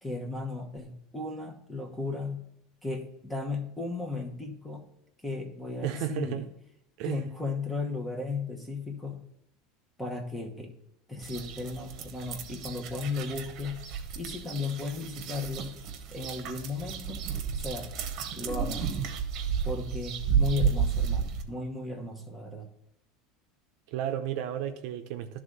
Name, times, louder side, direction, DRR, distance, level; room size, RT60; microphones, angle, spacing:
voice 1, 0.0-2.4 2.8-4.8 5.2-6.4 7.0-9.2 10.0-10.7 11.1-13.8 14.1-15.7 16.1-17.2 17.6-17.9 18.3-18.9 19.6-22.7, left 3 dB, 5° left, 1.1 m, -35 dB
voice 2, 5.8-6.5 7.0-7.2 23.9-25.4, right 10 dB, 65° right, 0.7 m, -33 dB
sound 1, 11.2-21.4, right 7 dB, 50° right, 1.0 m, -32 dB
11.0 x 3.7 x 5.3 m
supercardioid pair, 140°, 0 cm